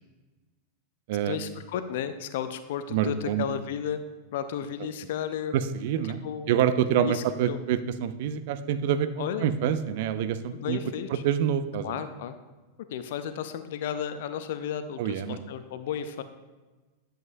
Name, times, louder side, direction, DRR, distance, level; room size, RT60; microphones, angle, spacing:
voice 1, 1.3-4.0 4.3-5.5 6.2-6.5 7.0-7.6 9.2-9.5 10.4-11.2 11.8-12.4 12.9-16.2, left 9 dB, 55° left, 10 dB, 0.5 m, -33 dB
voice 2, 2.9-3.5 5.5-6.2 6.5-10.8 11.2-11.9 15.0-15.4, right 9 dB, 50° right, 11 dB, 0.5 m, -26 dB
10.5 x 7.5 x 2.6 m, 1.2 s
figure-of-eight pair, 90°, 0 cm